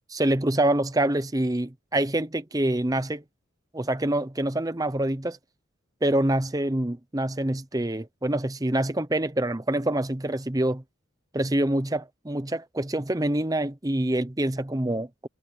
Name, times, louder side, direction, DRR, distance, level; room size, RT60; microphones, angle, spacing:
voice 1, 0.1-3.2 3.7-5.4 6.0-10.8 11.3-15.3, right 1 dB, 15° right, 0.8 m, -26 dB
head